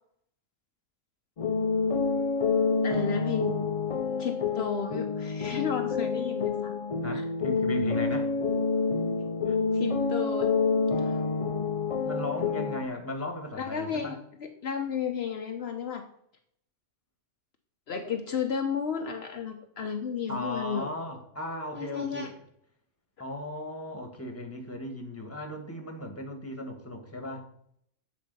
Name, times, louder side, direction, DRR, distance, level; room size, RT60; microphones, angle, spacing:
sound 1, 1.4-12.8, left 4 dB, 45° left, 0.5 m, -28 dB
voice 1, 2.8-3.6 4.2-6.7 7.1-7.2 9.7-10.5 11.0-11.2 13.6-16.0 17.9-20.9 21.8-22.3, left 6 dB, 65° left, 0.9 m, -32 dB
voice 2, 7.0-8.3 9.5-9.6 12.0-14.2 20.3-22.4 23.2-27.5, left 1 dB, 10° left, 1.3 m, -36 dB
8.5 x 4.1 x 5.3 m
omnidirectional pair, 1.2 m